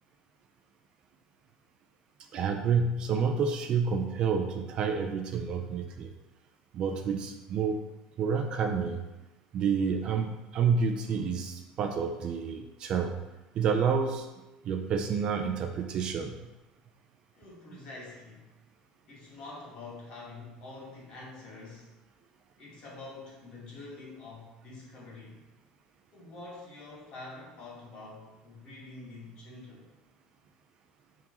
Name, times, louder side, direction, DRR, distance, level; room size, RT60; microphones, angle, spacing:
voice 1, 2.3-6.1 6.7-7.8 8.2-9.0 9.5-13.1 13.5-14.3 14.6-16.3, right 6 dB, 35° right, 5 dB, 0.5 m, -29 dB
voice 2, 10.8-11.3 17.3-18.5 19.1-21.9 22.6-25.4 26.1-29.9, left 3 dB, 40° left, -5 dB, 2.2 m, -46 dB
10.5 x 3.7 x 3.0 m, 1.1 s
cardioid pair, 160°, 2 cm